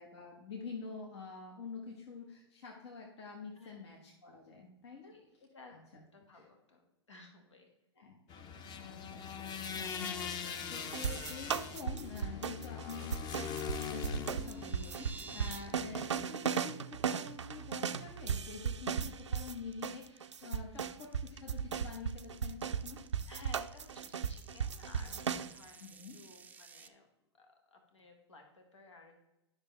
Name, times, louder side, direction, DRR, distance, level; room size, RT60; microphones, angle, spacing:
voice 1, 0.0-5.2 5.7-6.0 6.3-6.4 8.0-8.4 8.7-23.0 25.8-26.2, left 5 dB, 70° left, 0 dB, 1.4 m, -47 dB
voice 2, 3.5-3.9 5.1-6.8 7.1-7.7 14.2-14.5 23.3-27.1 27.3-29.2, left 4 dB, 85° left, 3 dB, 1.7 m, -56 dB
sound 1, 8.3-16.3, left 7 dB, 30° left, 0.7 m, -42 dB
sound 2, 10.9-19.5 19.8-25.5, right 7 dB, 90° right, 0.4 m, -36 dB
sound 3, 14.0-15.7 16.0-16.3 16.6-16.7 17.1-17.3 17.7-18.2 18.5-26.9, right 5 dB, 10° right, 0.4 m, -54 dB
10.5 x 6.0 x 3.3 m, 0.95 s
hypercardioid pair, 110°, 15 cm